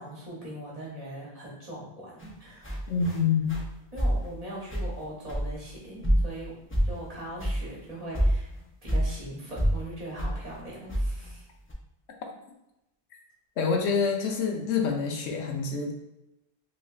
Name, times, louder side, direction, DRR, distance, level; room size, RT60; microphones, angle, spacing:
voice 1, 0.0-2.7 3.9-6.6 6.8-8.5 8.8-11.5, right 1 dB, 35° right, -6 dB, 1.0 m, -40 dB
sound 1, 2.2-2.3 2.6-3.2 3.5-3.7 4.0-4.3 4.7-5.0 5.3-5.7 6.0-6.4 6.7-7.1 7.4-7.6 7.9-8.0 8.1-9.1 9.6-9.8 10.2-10.4 10.9-11.3 11.7-11.8, equal, 20° left, 0.3 m, -26 dB
voice 2, 2.9-3.6 13.6-15.9, left 5 dB, 90° left, 2 dB, 0.9 m, -26 dB
3.1 x 3.0 x 2.3 m, 0.88 s
omnidirectional pair, 1.1 m